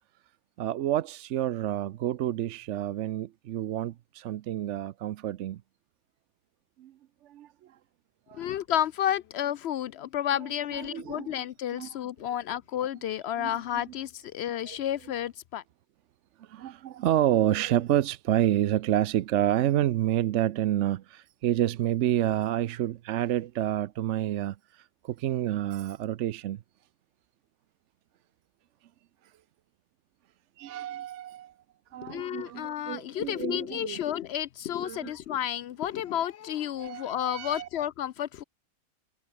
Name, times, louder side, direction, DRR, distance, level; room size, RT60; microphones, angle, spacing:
voice 1, 0.6-5.6 6.8-6.9 7.2-7.5 8.3-8.5 10.4-11.4 11.7-11.9 13.4-13.5 14.7-14.8 16.4-26.6 30.6-31.5 31.9-34.0 34.8-35.1 36.8-37.7, right 12 dB, 65° right, 0.8 m, -29 dB
voice 2, 8.4-15.6 32.0-38.4, left 11 dB, 65° left, 0.6 m, -31 dB
omnidirectional pair, 1.5 m